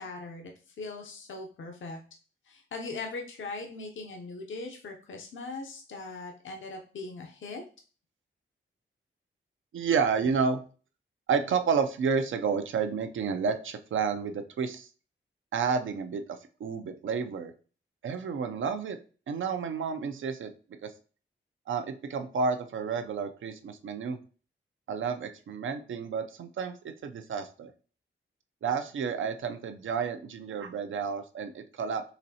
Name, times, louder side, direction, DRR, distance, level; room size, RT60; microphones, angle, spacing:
voice 1, 0.0-2.0 2.4-7.6, left 3 dB, 75° left, 2 dB, 0.6 m, -40 dB
voice 2, 9.7-10.6 11.3-14.9 15.5-16.2 16.6-17.5 18.0-19.0 19.3-20.5 20.8-20.9 21.7-24.2 24.9-26.7 27.0-27.7 28.6-32.0, right 5 dB, 80° right, 7 dB, 0.5 m, -30 dB
4.0 x 3.1 x 2.8 m, 0.38 s
cardioid pair, 80°, 20 cm